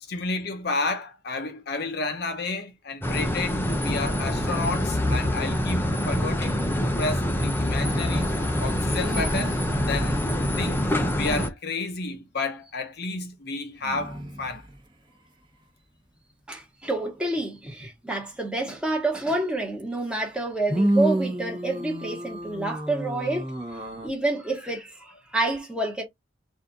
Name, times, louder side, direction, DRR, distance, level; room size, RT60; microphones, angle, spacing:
voice 1, 0.0-9.6 9.8-10.2 10.6-14.7, left 3 dB, 50° left, 0.7 m, -31 dB
sound 1, 3.0-11.5, left 1 dB, 10° left, 0.6 m, -25 dB
sound 2, 7.7-9.7 13.8-14.8 19.8-19.9 20.7-24.1, right 1 dB, 20° right, 1.2 m, -30 dB
voice 2, 16.5-26.0, right 2 dB, 5° right, 1.4 m, -28 dB
4.2 x 2.6 x 3.9 m
head